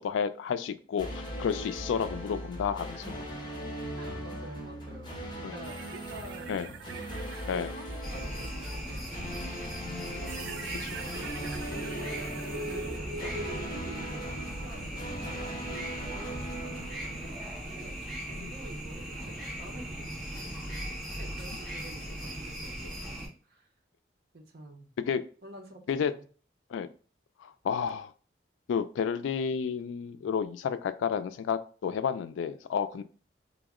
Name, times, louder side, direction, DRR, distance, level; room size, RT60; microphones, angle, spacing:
voice 1, 0.0-3.1 5.4-5.5 6.5-6.7 7.5-7.7 10.8-10.9 18.4-18.5 25.1-25.2 25.9-26.1 26.7-26.9 27.4-28.1 28.7-33.0, left 7 dB, 90° left, 12 dB, 0.3 m, -31 dB
sound 1, 1.0-18.0, equal, 25° left, 0.5 m, -39 dB
voice 2, 4.0-20.4 21.2-23.7 24.3-24.9 25.4-26.3 32.9-33.0, right 1 dB, 55° right, 2 dB, 0.7 m, -49 dB
sound 2, 5.6-8.0 9.4-9.5 10.2-13.0, right 9 dB, 80° right, 0.3 m, -45 dB
sound 3, 8.0-23.3, right 1 dB, ahead, 1.0 m, -38 dB
3.5 x 2.0 x 3.5 m, 0.40 s
head